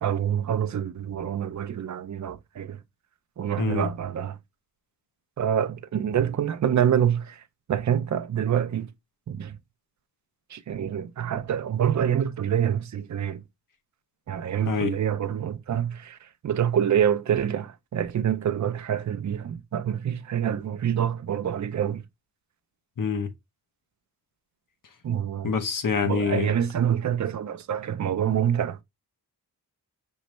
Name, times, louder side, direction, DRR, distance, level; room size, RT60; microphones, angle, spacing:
voice 1, 0.0-2.8 3.4-4.4 5.4-7.4 7.7-8.9 9.3-9.6 10.5-13.4 14.3-22.0 25.0-25.5 26.0-28.8, right 9 dB, 50° right, 0.5 m, -26 dB
voice 2, 3.6-3.9 14.6-14.9 23.0-23.3 25.4-26.5, left 6 dB, 55° left, 1.0 m, -26 dB
5.5 x 3.1 x 3.1 m
wide cardioid pair, 105°, 38 cm